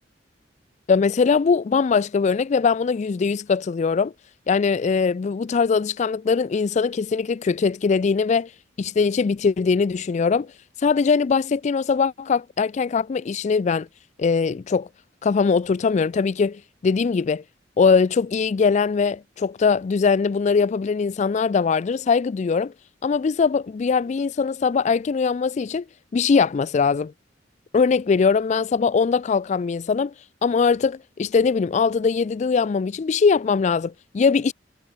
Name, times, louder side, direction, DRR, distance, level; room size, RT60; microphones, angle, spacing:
voice 1, 0.9-4.1 4.5-8.5 8.8-10.5 10.8-13.9 14.2-14.9 15.2-17.4 17.8-22.7 23.0-25.8 26.1-27.1 27.7-30.1 30.4-34.5, left 5 dB, 40° left, 0.3 m, -21 dB
head